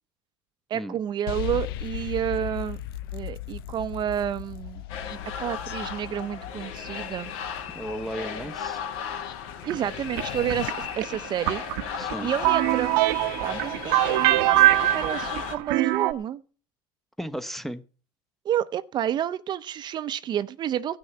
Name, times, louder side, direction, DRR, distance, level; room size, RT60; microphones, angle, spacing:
voice 1, 0.7-2.8 3.1-4.8 5.4-7.3 9.7-11.6 12.2-13.0 13.4-16.4 18.4-21.0, right 10 dB, 40° right, 0.7 m, -30 dB
sound 1, 1.3-10.7, left 13 dB, 85° left, 0.6 m, -38 dB
sound 2, 4.9-15.6, left 7 dB, 70° left, 2.9 m, -35 dB
voice 2, 7.7-8.8 12.0-12.3 17.2-17.8, equal, ahead, 0.9 m, -34 dB
sound 3, 9.7-16.1, right 16 dB, 75° right, 1.0 m, -23 dB
15.0 x 6.5 x 7.9 m
supercardioid pair, 115°, 12 cm